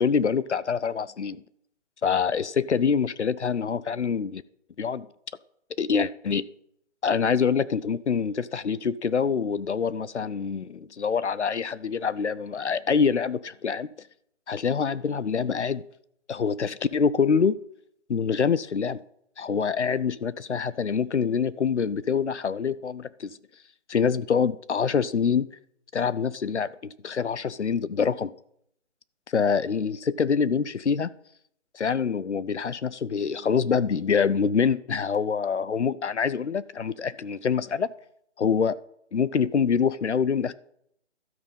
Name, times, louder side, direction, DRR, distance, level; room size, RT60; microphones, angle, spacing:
voice 1, 0.0-1.4 2.0-4.4 4.8-5.1 5.8-6.4 7.0-13.9 14.5-15.8 16.3-17.6 18.1-19.0 19.4-23.3 23.9-25.5 25.9-26.7 27.0-28.3 29.3-31.1 31.7-37.9 38.4-38.8 39.1-40.5, left 6 dB, 65° left, 18 dB, 0.7 m, -25 dB
12.5 x 9.0 x 5.5 m, 0.72 s
hypercardioid pair, 180°, 37 cm